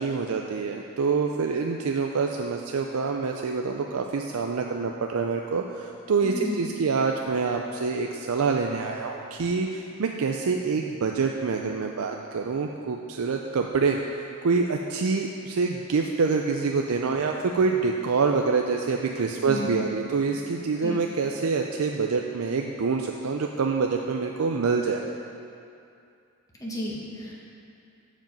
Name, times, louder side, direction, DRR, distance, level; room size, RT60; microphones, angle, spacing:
voice 1, 0.0-14.0 14.4-25.0, right 4 dB, 80° right, 2 dB, 0.5 m, -26 dB
voice 2, 6.2-6.7 19.4-19.9 20.8-21.0 26.6-27.3, left 1 dB, 15° left, -5 dB, 1.6 m, -33 dB
13.0 x 5.2 x 5.3 m, 2.6 s
head